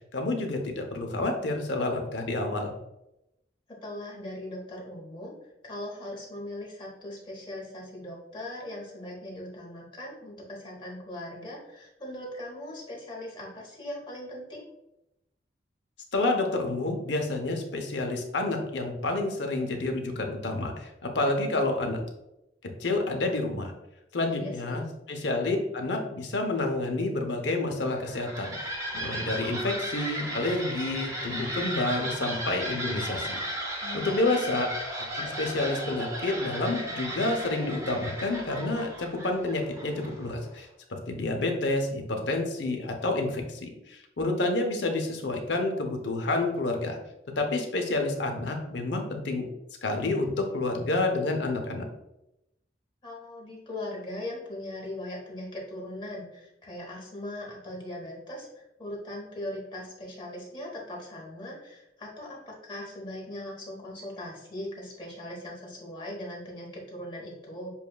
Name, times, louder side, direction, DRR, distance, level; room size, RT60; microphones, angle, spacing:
voice 1, 0.1-2.7 16.1-22.0 22.8-23.7 24.1-33.4 34.0-34.7 35.1-47.0 47.4-49.4 49.8-51.8, left 2 dB, 75° left, 3 dB, 0.7 m, -29 dB
voice 2, 3.8-5.3 5.6-14.7 24.3-24.8 33.8-34.5 53.0-67.7, left 1 dB, 25° left, -3 dB, 1.1 m, -39 dB
sound 1, 27.9-40.4, equal, 15° right, 0.6 m, -35 dB
7.0 x 2.4 x 2.3 m, 0.88 s
head